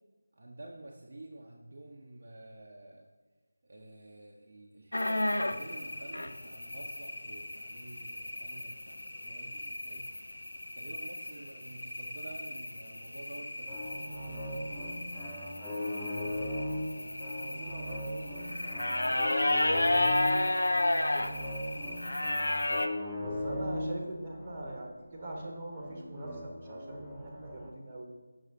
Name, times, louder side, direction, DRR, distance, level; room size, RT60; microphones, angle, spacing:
voice 1, 0.3-3.1 3.6-10.1 10.7-14.8 15.6-20.3, right 1 dB, 45° right, -2 dB, 0.7 m, -50 dB
sound 1, 4.9-22.9, left 1 dB, 65° left, 0.5 m, -33 dB
sound 2, 13.7-27.7, left 1 dB, ahead, 0.6 m, -38 dB
voice 2, 23.2-28.1, right 1 dB, 25° right, -1 dB, 1.0 m, -42 dB
6.4 x 6.3 x 2.7 m, 1.3 s
figure-of-eight pair, 165°, 0 cm